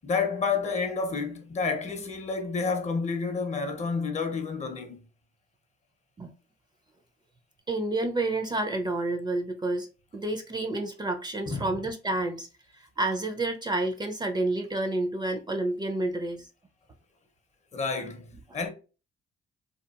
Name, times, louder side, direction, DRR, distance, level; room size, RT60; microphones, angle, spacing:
voice 1, 0.0-5.1 11.5-11.8 17.7-18.7, left 4 dB, 35° left, 0.6 m, -30 dB
voice 2, 7.7-12.5 12.7-16.5, right 2 dB, 20° right, 0.4 m, -29 dB
2.8 x 2.3 x 2.3 m
cardioid pair, 90°, 20 cm